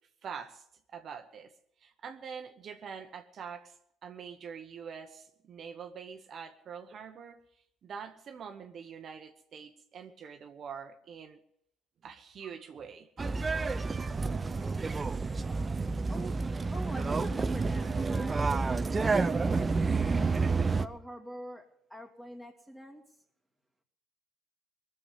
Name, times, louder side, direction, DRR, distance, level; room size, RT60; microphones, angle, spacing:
voice 1, 0.2-1.5 1.8-3.8 4.0-7.4 7.8-11.4 12.0-13.3, right 6 dB, 50° right, 1.1 m, -45 dB
sound 1, 13.2-20.9, right 4 dB, 30° right, 0.7 m, -29 dB
voice 2, 16.1-20.3 20.8-23.0, equal, ahead, 2.7 m, -45 dB
20.0 x 7.1 x 8.2 m
supercardioid pair, 75°, 0 cm